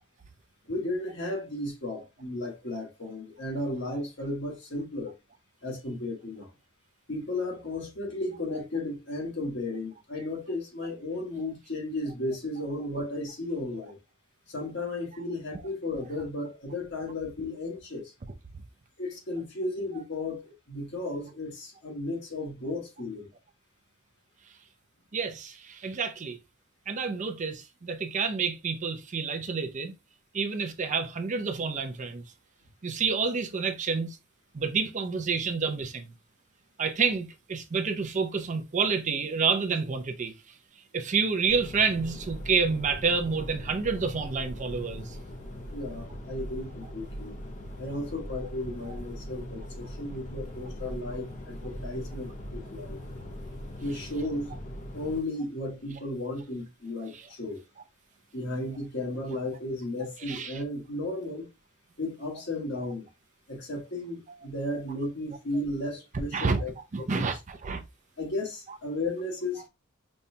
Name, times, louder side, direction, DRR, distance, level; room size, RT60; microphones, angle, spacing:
voice 1, 0.7-5.1 5.6-6.5 7.1-14.0 14.5-18.1 19.0-23.3 45.7-47.3 47.8-53.0 53.8-54.5 54.9-57.6 58.3-61.5 62.0-63.1 63.5-66.7 67.0-67.3 68.2-69.6, left 2 dB, 55° left, 1.4 m, -34 dB
voice 2, 25.1-26.4 26.9-29.9 30.3-32.2 32.8-34.2 34.5-36.1 36.8-40.3 40.9-45.2 48.9-49.0 57.1-57.3 60.3-60.6 66.3-66.6 66.9-67.8, right 5 dB, 35° right, 0.5 m, -29 dB
sound 1, 41.5-55.2, equal, 35° left, 0.6 m, -40 dB
5.3 x 2.3 x 2.7 m
head